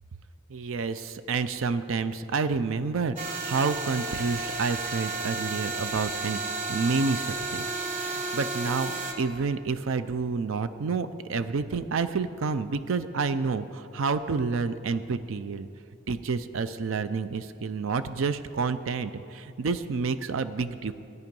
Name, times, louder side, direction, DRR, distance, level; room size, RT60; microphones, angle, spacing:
voice 1, 0.5-6.4 6.7-8.9 9.2-15.7 16.1-20.9, right 4 dB, 70° right, 12 dB, 0.4 m, -29 dB
sound 1, 3.2-9.1, right 3 dB, 40° right, 1.2 m, -32 dB
14.5 x 9.4 x 5.3 m, 2.5 s
head